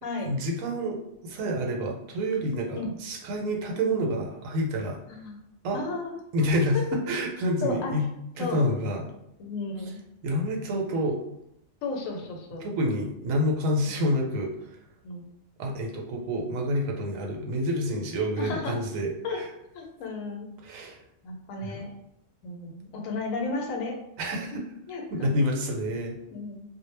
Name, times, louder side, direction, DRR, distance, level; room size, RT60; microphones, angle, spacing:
voice 1, 0.2-5.2 5.6-5.8 6.3-8.1 8.4-9.1 10.2-11.2 12.6-14.8 15.6-19.5 20.6-21.0 21.6-21.8 24.2-24.6 25.1-26.2, equal, 85° right, 2 dB, 1.0 m, -28 dB
voice 2, 5.1-5.4 5.7-6.1 7.6-7.9 8.4-8.7 9.4-10.0 11.8-12.6 13.9-14.0 15.0-15.2 18.4-18.8 19.2-19.4 19.7-20.5 21.2-21.9 22.4-23.9 24.5-25.3 26.3-26.6, left 3 dB, 85° left, 2 dB, 1.0 m, -34 dB
2.1 x 2.0 x 3.1 m, 0.80 s
omnidirectional pair, 1.3 m